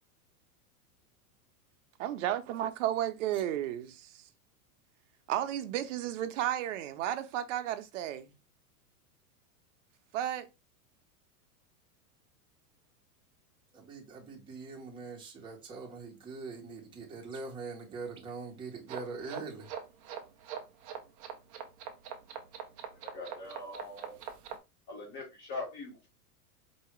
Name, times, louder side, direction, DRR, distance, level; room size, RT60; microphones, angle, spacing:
voice 1, 2.0-4.2 5.3-8.3 10.1-10.5, right 12 dB, 55° right, 0.7 m, -33 dB
voice 2, 13.7-19.7, right 4 dB, 10° right, 0.8 m, -43 dB
sound 1, 18.9-24.6, right 8 dB, 25° right, 0.4 m, -42 dB
voice 3, 22.9-24.2 24.9-26.1, left 2 dB, 50° left, 2.9 m, -42 dB
4.6 x 2.8 x 3.1 m
supercardioid pair, 150°, 45 cm